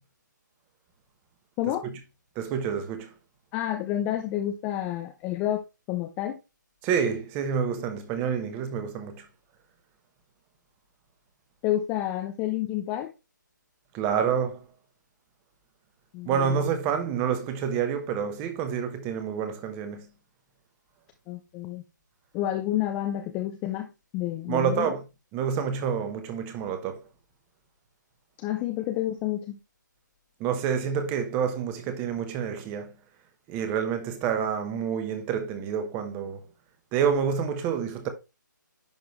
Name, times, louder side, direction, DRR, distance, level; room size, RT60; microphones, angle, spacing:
voice 1, 1.6-1.9 3.5-6.4 11.6-13.1 16.1-16.5 21.3-21.8 22.3-23.9 24.1-24.9 28.4-29.6, left 12 dB, 10° left, 0.4 m, -29 dB
voice 2, 2.4-3.1 6.8-9.2 13.9-14.6 16.3-20.1 24.5-25.0 25.3-27.0 30.4-32.9 33.5-36.4 36.9-38.1, right 7 dB, 15° right, 1.0 m, -28 dB
10.5 x 3.8 x 3.1 m
hypercardioid pair, 160°, 10 cm